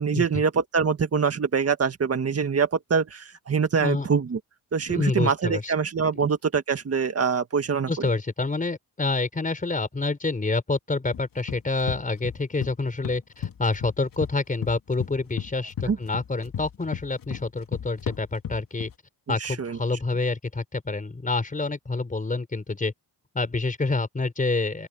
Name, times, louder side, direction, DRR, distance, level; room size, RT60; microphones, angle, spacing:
voice 1, 0.0-4.4 4.7-8.1 15.9-16.0 19.3-19.8, right 6 dB, 35° right, 1.8 m, -24 dB
voice 2, 4.9-5.7 7.9-18.9 19.3-22.9 23.3-24.9, left 3 dB, 20° left, 4.6 m, -27 dB
sound 1, 11.1-12.7 13.0-14.3 14.6-18.9, left 9 dB, 55° left, 2.7 m, -34 dB
open air
wide cardioid pair, 145°, 40 cm